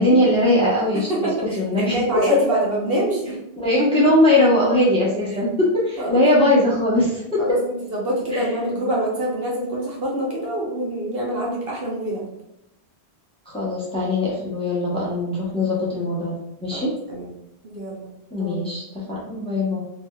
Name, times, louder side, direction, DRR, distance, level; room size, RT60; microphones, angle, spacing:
voice 1, 0.0-1.1 1.6-2.2 3.6-7.4 8.3-8.5 13.5-16.3 16.6-16.9 18.3-19.8, left 1 dB, 5° left, -6 dB, 0.8 m, -20 dB
voice 2, 1.1-3.4 6.0-6.2 7.4-12.3 16.7-17.3 17.6-18.6, right 1 dB, 60° right, -3 dB, 1.0 m, -26 dB
3.4 x 2.9 x 2.2 m, 0.82 s
omnidirectional pair, 1.1 m